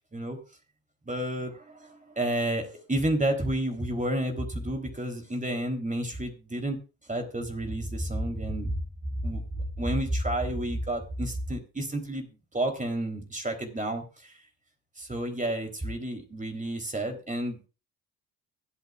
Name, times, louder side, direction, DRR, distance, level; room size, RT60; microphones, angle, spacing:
voice 1, 1.0-6.8 7.1-8.8 9.2-9.4 9.8-12.3 12.5-14.3 15.0-17.7, right 1 dB, 20° right, 4 dB, 3.5 m, -30 dB
24.0 x 8.3 x 2.5 m, 0.31 s
hypercardioid pair, 45°, 41 cm